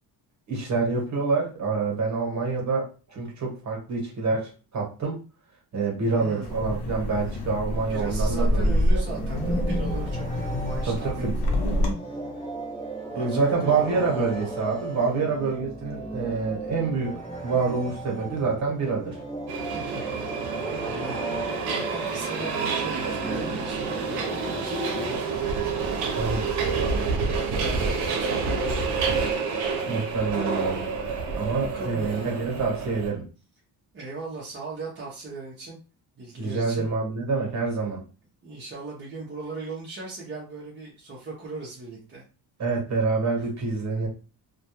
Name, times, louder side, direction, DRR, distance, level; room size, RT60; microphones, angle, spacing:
voice 1, 0.5-5.2 5.7-9.0 10.9-11.3 13.1-19.2 25.5-25.6 26.1-26.6 29.8-30.8 31.3-33.3 36.4-38.0 42.6-44.1, right 4 dB, 45° right, -1 dB, 1.1 m, -27 dB
voice 2, 6.1-6.5 7.9-12.3 13.1-14.1 19.5-25.6 27.0-29.3 31.6-32.3 33.9-35.8 36.2-36.9 38.4-42.2 43.4-43.5, right 2 dB, 30° right, -4 dB, 0.6 m, -39 dB
Wind, 6.4-11.9, equal, 75° left, 0.8 m, -26 dB
sound 1, 9.1-25.2, right 2 dB, 15° left, 0.8 m, -36 dB
Subway metro underground, 19.5-33.1, right 4 dB, 80° right, 0.7 m, -28 dB
2.2 x 2.2 x 2.9 m, 0.35 s
cardioid pair, 140°, 39 cm